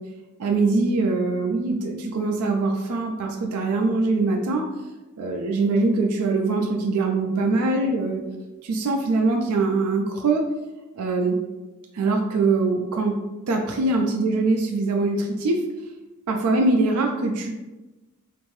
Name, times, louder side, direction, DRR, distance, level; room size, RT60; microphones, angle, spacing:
voice 1, 0.4-4.7 5.2-8.2 8.6-10.4 11.0-11.4 11.9-13.2 13.5-15.7 16.3-17.5, right 3 dB, 85° right, 2 dB, 0.4 m, -23 dB
2.6 x 2.5 x 3.1 m, 1.1 s
head